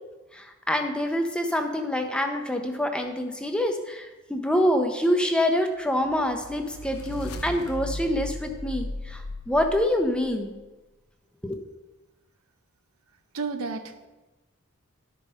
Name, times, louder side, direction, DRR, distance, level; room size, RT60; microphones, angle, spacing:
voice 1, 0.3-10.5 11.4-11.6, left 1 dB, 5° left, 5 dB, 0.6 m, -26 dB
sound 1, 6.0-10.3, left 1 dB, 85° left, 0.8 m, -36 dB
voice 2, 13.3-14.1, right 4 dB, 85° right, 7 dB, 0.8 m, -32 dB
11.5 x 5.4 x 4.2 m, 1.2 s
head